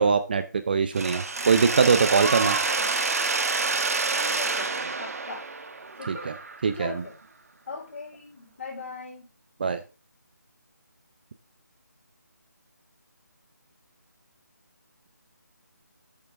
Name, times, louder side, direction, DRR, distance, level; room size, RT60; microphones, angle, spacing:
voice 1, 0.0-2.6 6.1-6.3 6.6-6.9 9.6-9.8, right 5 dB, 30° right, 10 dB, 0.5 m, -22 dB
Mechanisms, 1.0-6.8, right 4 dB, 55° right, 1.2 m, -28 dB
voice 2, 2.3-3.1 4.1-5.5 6.0-6.3 6.7-7.2 7.7-9.3, left 4 dB, 40° left, 0 dB, 4.4 m, -40 dB
8.8 x 6.8 x 3.5 m, 0.31 s
figure-of-eight pair, 160°, 10 cm